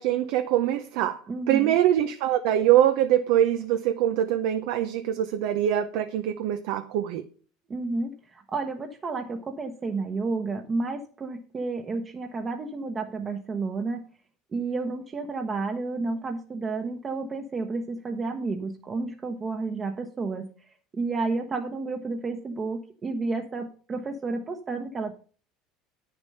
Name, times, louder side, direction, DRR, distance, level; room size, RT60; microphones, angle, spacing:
voice 1, 0.0-1.2 1.5-7.2, right 11 dB, 75° right, 0.7 m, -23 dB
voice 2, 1.3-1.8 7.7-14.0 14.5-25.1, right 3 dB, 30° right, 1.1 m, -31 dB
9.1 x 6.8 x 5.4 m
supercardioid pair, 110°, 0 cm